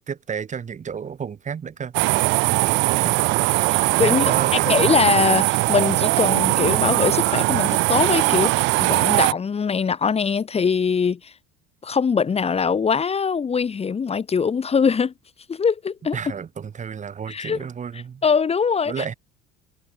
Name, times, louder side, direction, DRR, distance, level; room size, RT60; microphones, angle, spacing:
voice 1, 0.0-1.9 2.9-3.4 3.7-4.9 16.1-18.2 18.9-19.1, right 7 dB, 35° right, 4.9 m, -32 dB
Cricket at the road, 1.9-9.3, right 23 dB, 65° right, 1.0 m, -20 dB
voice 2, 3.6-4.3 4.7-11.3 11.8-15.1 15.5-16.2 17.3-17.6 18.2-19.1, left 6 dB, 30° left, 2.1 m, -22 dB
hypercardioid pair, 70°, 21 cm